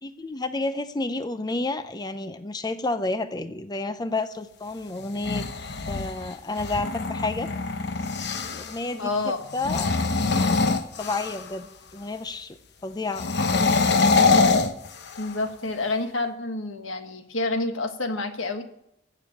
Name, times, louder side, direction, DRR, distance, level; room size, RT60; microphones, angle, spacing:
voice 1, 0.0-5.4 5.9-7.5 8.5-9.1 9.5-9.9 11.0-12.6 12.8-13.3, left 2 dB, 20° left, 11 dB, 0.6 m, -30 dB
sound 1, 5.0-8.8 9.5-11.6 13.1-15.4, left 4 dB, 60° left, 1.0 m, -24 dB
voice 2, 9.0-9.4 15.2-18.6, left 2 dB, 80° left, 7 dB, 1.6 m, -28 dB
15.5 x 7.0 x 7.2 m, 0.80 s
head